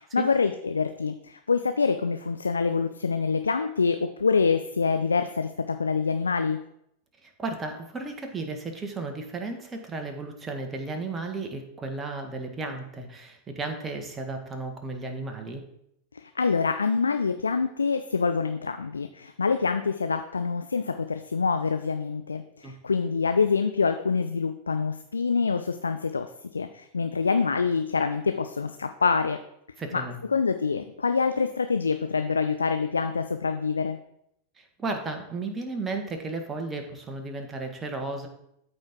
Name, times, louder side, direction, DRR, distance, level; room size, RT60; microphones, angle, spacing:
voice 1, 0.0-6.6 16.1-29.4 29.9-34.0, left 5 dB, 75° left, 8 dB, 0.4 m, -26 dB
voice 2, 7.2-15.6 22.6-22.7 29.8-30.2 34.6-38.3, right 3 dB, 20° right, 4 dB, 1.6 m, -34 dB
13.0 x 4.4 x 3.7 m, 0.77 s
figure-of-eight pair, 90°, 0 cm